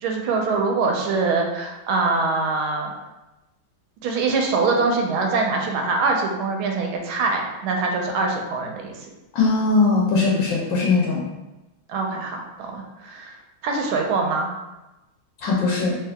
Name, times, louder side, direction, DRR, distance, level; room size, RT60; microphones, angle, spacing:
voice 1, 0.0-2.9 4.0-9.0 11.9-13.4 13.6-14.5, right 3 dB, 80° right, 1 dB, 1.4 m, -23 dB
voice 2, 9.3-11.2 15.4-15.9, left 3 dB, 70° left, -4 dB, 1.3 m, -20 dB
3.4 x 2.8 x 3.4 m, 1.0 s
omnidirectional pair, 2.3 m